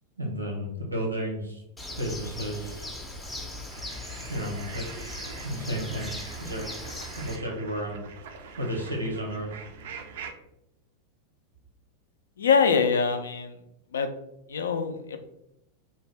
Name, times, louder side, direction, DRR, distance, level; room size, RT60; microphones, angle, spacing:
voice 1, 0.2-1.6 1.9-2.9 4.3-8.0 8.6-9.5, equal, 80° right, 0 dB, 0.7 m, -33 dB
Bird, 1.8-7.4, left 1 dB, 5° left, 0.5 m, -39 dB
sound 1, 3.7-10.3, right 6 dB, 55° right, 0.3 m, -44 dB
voice 2, 12.4-13.5 13.9-14.1 14.5-15.2, left 6 dB, 65° left, 8 dB, 0.3 m, -24 dB
2.6 x 2.2 x 3.2 m, 0.82 s
figure-of-eight pair, 90°, 0 cm